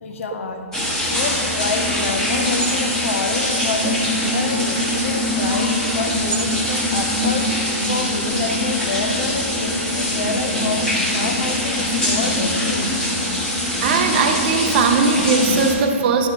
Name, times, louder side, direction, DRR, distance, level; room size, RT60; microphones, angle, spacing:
voice 1, 0.0-0.6 1.0-7.6 7.9-12.9, left 4 dB, 65° left, 6 dB, 0.7 m, -28 dB
sound 1, 0.7-15.7, left 1 dB, 5° left, 1.3 m, -22 dB
voice 2, 13.8-16.3, right 5 dB, 45° right, 6 dB, 0.6 m, -19 dB
10.5 x 4.4 x 3.7 m, 2.7 s
hypercardioid pair, 135°, 8 cm